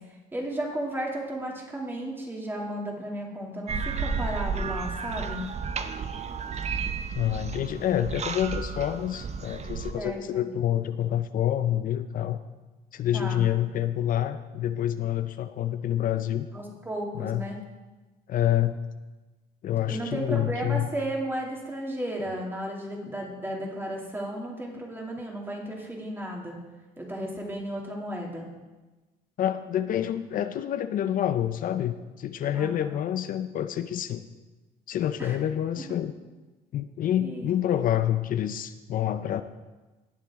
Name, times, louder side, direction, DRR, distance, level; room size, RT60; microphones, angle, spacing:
voice 1, 0.3-5.4 9.9-10.4 13.1-13.4 16.5-17.6 19.9-26.6 27.0-28.4 32.5-32.7 35.2-35.4 37.2-37.5, right 1 dB, 15° right, -1 dB, 2.6 m, -34 dB
sound 1, 3.7-9.9, right 5 dB, 40° right, 0.7 m, -32 dB
voice 2, 7.2-12.4 12.9-16.5 17.1-17.5 18.3-18.8 19.6-20.9 29.4-34.3 34.9-36.1 36.7-39.4, left 11 dB, 55° left, 11 dB, 0.6 m, -27 dB
18.5 x 7.3 x 3.6 m, 1.2 s
cardioid pair, 110°, 17 cm